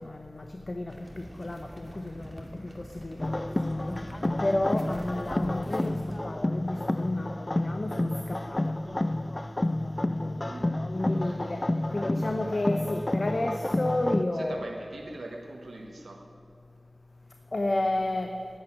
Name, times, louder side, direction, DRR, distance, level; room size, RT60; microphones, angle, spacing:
voice 1, 0.0-4.0 4.4-8.8 10.2-10.5 10.9-14.7 17.5-18.3, left 1 dB, 55° left, 5 dB, 0.8 m, -32 dB
sound 1, 0.9-6.2, equal, 15° right, 2.3 m, -46 dB
sound 2, 3.2-14.2, left 1 dB, 35° left, 0.4 m, -30 dB
voice 2, 11.1-11.4 14.3-16.3, right 2 dB, 85° right, 2 dB, 1.3 m, -42 dB
11.0 x 9.4 x 9.6 m, 2.4 s
wide cardioid pair, 45°, 0 cm